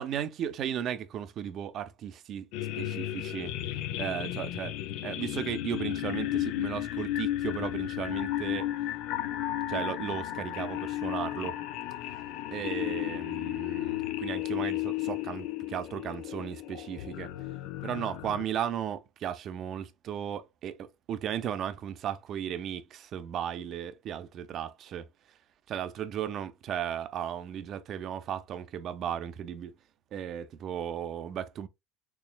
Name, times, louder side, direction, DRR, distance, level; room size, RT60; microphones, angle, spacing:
voice 1, 0.0-2.5 2.8-3.5 4.0-4.7 5.0-8.7 9.7-11.6 12.5-17.3 17.8-25.0 25.7-29.7 30.1-31.7, right 9 dB, 50° right, 0.7 m, -35 dB
sound 1, 2.5-18.4, left 14 dB, 65° left, 0.5 m, -33 dB
4.6 x 3.1 x 2.3 m
hypercardioid pair, 85°, 0 cm